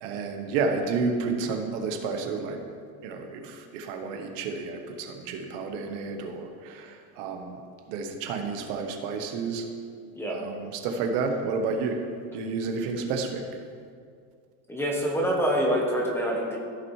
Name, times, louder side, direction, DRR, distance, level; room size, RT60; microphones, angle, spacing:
voice 1, 0.0-2.6 3.0-7.6 7.9-9.7 10.3-12.0 12.3-13.5, right 4 dB, 65° right, 4 dB, 1.2 m, -30 dB
voice 2, 14.7-16.6, equal, 5° left, -2 dB, 1.0 m, -26 dB
14.5 x 6.0 x 3.2 m, 2.2 s
cardioid pair, 160°, 41 cm